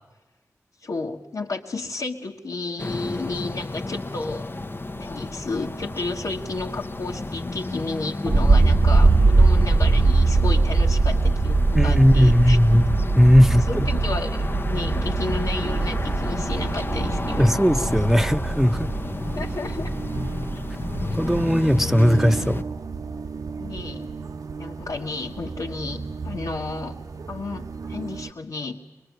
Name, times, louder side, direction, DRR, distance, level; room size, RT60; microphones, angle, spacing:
voice 1, 0.8-4.5 5.0-12.6 13.5-17.5 19.4-20.0 23.6-24.1 24.6-26.9 27.3-28.8, left 3 dB, 85° left, -2 dB, 1.6 m, -32 dB
sound 1, 2.8-22.6, left 2 dB, 40° left, 0.8 m, -32 dB
sound 2, 8.3-21.4, right 3 dB, 45° right, 0.8 m, -21 dB
voice 2, 11.7-13.9 17.4-18.9 21.1-22.6, equal, 5° right, 7 dB, 0.9 m, -18 dB
sound 3, 15.6-28.3, right 4 dB, 85° right, 0.9 m, -35 dB
24.5 x 21.5 x 9.5 m, 1.2 s
wide cardioid pair, 60°, 6 cm